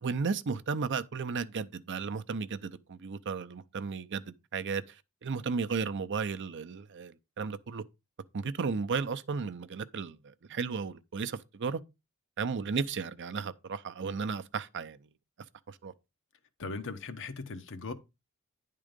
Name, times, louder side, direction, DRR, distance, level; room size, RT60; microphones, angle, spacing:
voice 1, 0.0-4.8 5.2-7.8 8.3-11.8 12.4-15.0 15.7-15.9, right 5 dB, 55° right, 0.6 m, -34 dB
voice 2, 16.6-17.9, left 3 dB, 60° left, 0.9 m, -39 dB
9.9 x 3.7 x 5.1 m
head